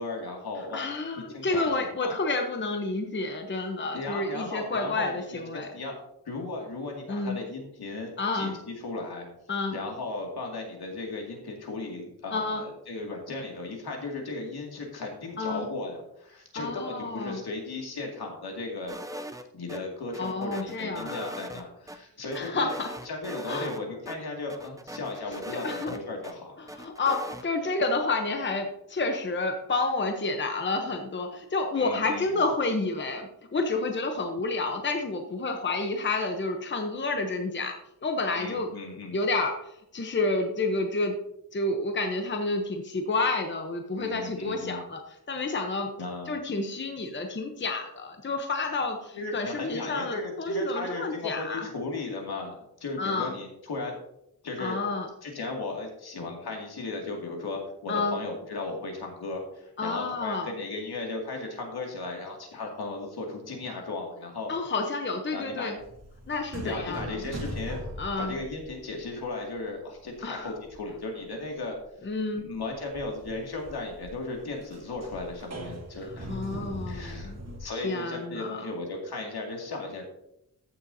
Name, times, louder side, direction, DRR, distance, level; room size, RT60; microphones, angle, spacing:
voice 1, 0.0-0.9 1.3-1.7 2.0-2.2 3.9-5.9 6.3-9.3 9.7-19.0 19.5-22.7 23.0-26.6 31.8-32.4 38.2-39.2 43.9-44.8 46.0-46.3 49.1-52.5 52.8-53.9 54.4-54.8 55.2-64.5 65.3-65.8 66.6-67.8 68.2-71.8 72.3-76.3 76.6-77.3 77.6-80.1, left 3 dB, 75° left, 0 dB, 2.4 m, -36 dB
voice 2, 0.7-5.7 7.1-7.4 8.2-8.6 9.5-9.8 12.3-12.6 15.4-15.7 16.5-17.4 20.2-21.3 22.3-22.9 23.5-23.7 25.5-25.9 26.6-38.7 39.1-41.2 41.5-45.9 46.3-51.7 53.0-53.4 54.6-55.1 57.9-58.2 59.8-60.5 64.5-65.8 66.3-67.2 68.0-68.4 70.2-70.5 72.0-72.5 76.3-77.4 77.7-78.6, left 3 dB, 30° left, 4 dB, 0.9 m, -30 dB
sound 1, 18.9-19.8 20.1-22.0 22.3-23.8 24.1-24.2 24.5-26.3 26.7-27.4, equal, 10° right, 0.5 m, -40 dB
sound 2, 65.8-69.6 69.9-70.9 71.2-71.3 71.8-77.6, equal, 40° right, 1.9 m, -40 dB
14.5 x 6.9 x 2.8 m, 0.79 s
wide cardioid pair, 155°, 38 cm